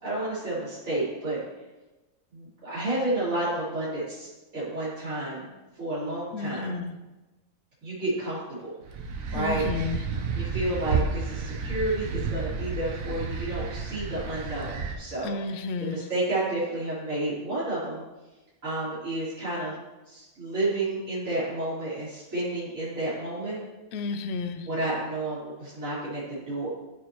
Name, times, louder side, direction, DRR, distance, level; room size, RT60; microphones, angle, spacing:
voice 1, 0.0-1.4 2.3-5.5 5.8-6.8 7.8-8.7 9.3-9.7 10.3-18.0 18.6-19.8 20.1-23.6 24.6-26.7, right 2 dB, 70° right, -13 dB, 3.5 m, -31 dB
voice 2, 6.3-6.9 9.3-10.0 15.2-16.0 23.9-24.7, left 4 dB, 60° left, 8 dB, 0.8 m, -32 dB
sound 1, 8.9-15.0, right 5 dB, 90° right, 1.2 m, -31 dB
14.0 x 4.7 x 3.0 m, 1.1 s
omnidirectional pair, 1.4 m